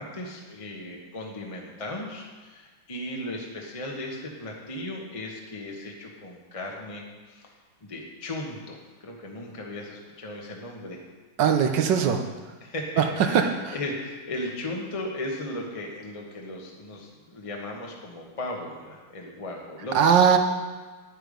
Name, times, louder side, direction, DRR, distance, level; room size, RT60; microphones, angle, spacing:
voice 1, 0.0-7.5 7.8-11.0 12.6-20.2, left 1 dB, 20° left, -1 dB, 1.0 m, -36 dB
voice 2, 11.4-12.2 13.0-13.1 13.3-13.7 19.9-20.4, right 7 dB, 65° right, 5 dB, 1.3 m, -20 dB
10.5 x 9.1 x 5.1 m, 1.3 s
omnidirectional pair, 2.4 m